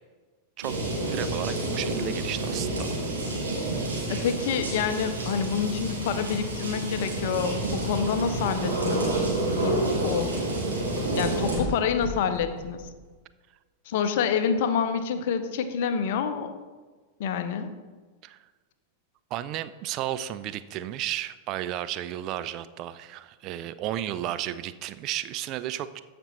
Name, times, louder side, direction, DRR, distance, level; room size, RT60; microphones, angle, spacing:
sound 1, 0.6-11.6, right 2 dB, 70° right, 2.7 m, -29 dB
voice 1, 1.1-2.9 18.2-18.4 19.3-26.0, right 12 dB, 40° right, 13 dB, 0.3 m, -33 dB
voice 2, 4.1-9.1 9.5-10.3 11.2-12.9 13.9-16.5 17.2-17.7, left 7 dB, 55° left, 10 dB, 0.7 m, -27 dB
sound 2, 7.5-13.2, left 3 dB, 35° left, 2.3 m, -40 dB
14.0 x 5.2 x 3.0 m, 1.4 s
figure-of-eight pair, 90°, 0 cm